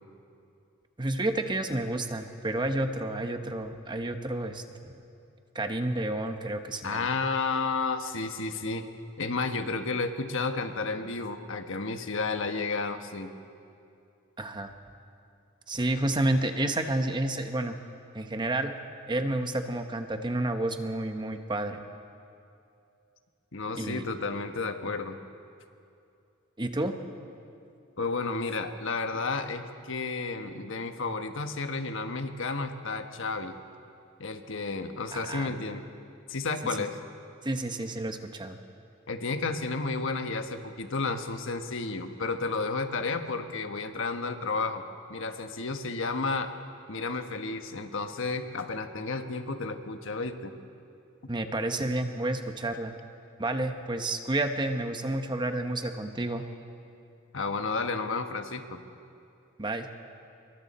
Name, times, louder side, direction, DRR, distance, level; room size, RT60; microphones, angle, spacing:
voice 1, 1.0-5.0 5.5-7.0 14.4-14.7 15.7-17.7 18.1-18.7 19.1-21.8 23.8-24.0 26.6-26.9 35.1-35.6 37.4-38.6 51.3-52.9 53.4-56.4 59.6-59.9, right 1 dB, 20° right, 6 dB, 1.0 m, -30 dB
voice 2, 6.8-8.9 9.2-13.3 23.5-25.2 28.0-33.6 34.2-35.9 36.3-37.0 39.1-44.8 45.1-46.5 46.9-50.5 57.3-58.8, left 3 dB, 65° left, 6 dB, 1.3 m, -32 dB
26.5 x 23.0 x 4.3 m, 2.6 s
head